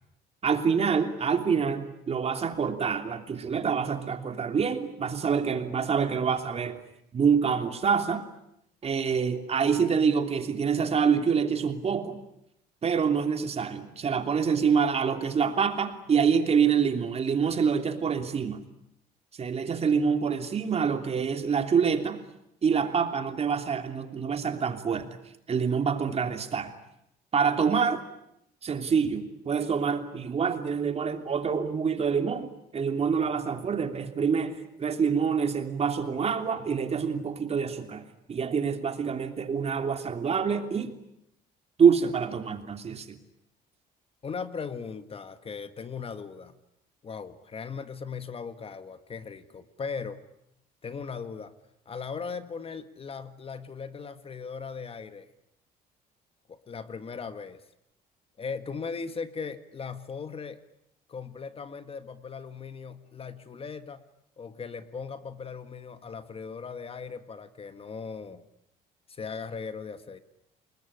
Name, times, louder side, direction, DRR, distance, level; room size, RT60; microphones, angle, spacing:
voice 1, 0.4-6.8 7.1-8.2 8.8-12.2 12.8-18.6 19.3-22.2 22.6-25.2 25.5-26.7 27.3-28.0 28.6-40.9 41.8-43.2, right 6 dB, 40° right, 7 dB, 3.1 m, -26 dB
voice 2, 44.2-46.5 47.0-50.2 50.8-51.5 51.9-55.3 56.5-57.6 58.4-60.6 61.1-64.0 64.4-68.5 69.1-70.2, left 5 dB, 35° left, 11 dB, 1.7 m, -38 dB
29.0 x 20.5 x 10.0 m, 0.81 s
cardioid pair, 110°, 17 cm